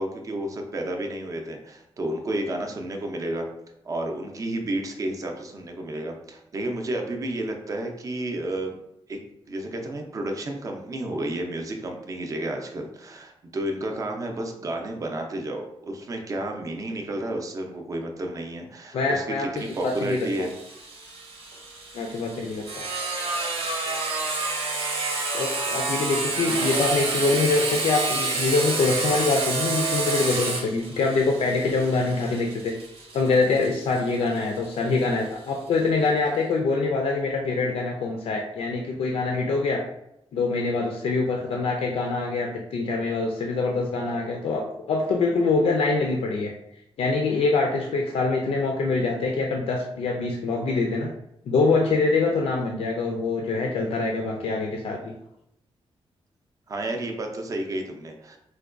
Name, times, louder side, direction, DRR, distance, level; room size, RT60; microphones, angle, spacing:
voice 1, 0.0-3.5 3.8-8.8 9.1-9.2 9.5-20.5 56.7-58.4, right 1 dB, 35° right, 3 dB, 0.4 m, -31 dB
voice 2, 18.9-19.5 19.8-20.5 21.9-22.8 25.3-32.7 33.1-39.8 40.3-46.5 47.0-51.1 51.5-55.1, left 3 dB, 75° left, 1 dB, 0.4 m, -24 dB
Sawing, 19.6-35.0, right 3 dB, 80° right, 0.8 m, -29 dB
4.4 x 2.2 x 2.4 m, 0.81 s
wide cardioid pair, 175°, 10 cm